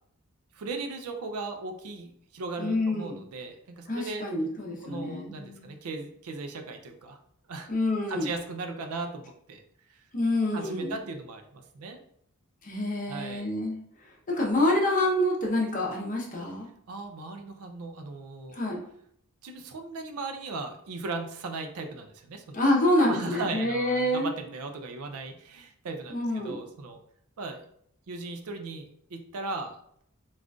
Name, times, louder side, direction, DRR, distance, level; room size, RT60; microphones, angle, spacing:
voice 1, 0.5-4.3 4.8-7.2 7.5-7.7 8.1-9.6 9.9-10.0 10.5-12.0 13.1-13.5 16.9-18.6 19.4-22.5 23.1-27.0 27.4-27.6 28.1-30.0, right 3 dB, 75° right, 5 dB, 0.4 m, -37 dB
voice 2, 2.6-3.2 3.9-5.7 7.7-8.3 10.1-11.0 12.6-16.7 18.5-18.8 22.5-24.3 26.1-26.6, left 1 dB, 35° left, -1 dB, 0.7 m, -27 dB
3.6 x 2.4 x 2.3 m, 0.68 s
head